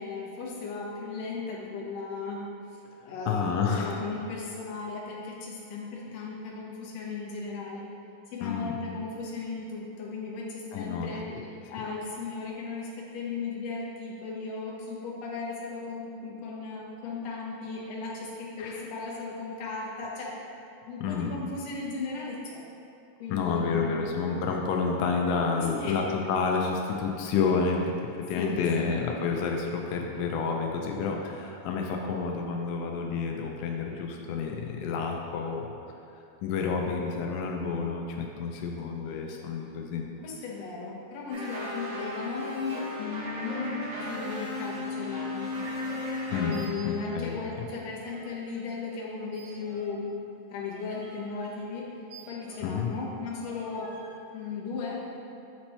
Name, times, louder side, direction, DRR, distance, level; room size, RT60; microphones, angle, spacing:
voice 1, 0.0-2.4 3.1-7.9 8.3-20.3 20.9-22.6 23.2-24.0 25.8-25.9 28.4-29.0 40.2-45.5 46.4-50.1 50.5-51.9 52.3-53.9 54.3-55.1, left 4 dB, 70° left, -4 dB, 2.0 m, -36 dB
voice 2, 3.3-4.0 8.4-8.7 10.7-11.4 18.6-18.8 21.0-21.3 23.3-27.9 28.3-35.7 36.4-40.1 46.3-47.3 52.6-52.9, left 5 dB, 90° left, 1 dB, 2.0 m, -29 dB
sound 1, 41.3-46.6, left 2 dB, 60° right, 1.0 m, -35 dB
sound 2, 46.4-47.3 47.6-48.7 49.3-52.9 53.4-54.2, right 2 dB, 75° right, 3.0 m, -52 dB
8.8 x 3.0 x 4.2 m, 2.7 s
omnidirectional pair, 3.4 m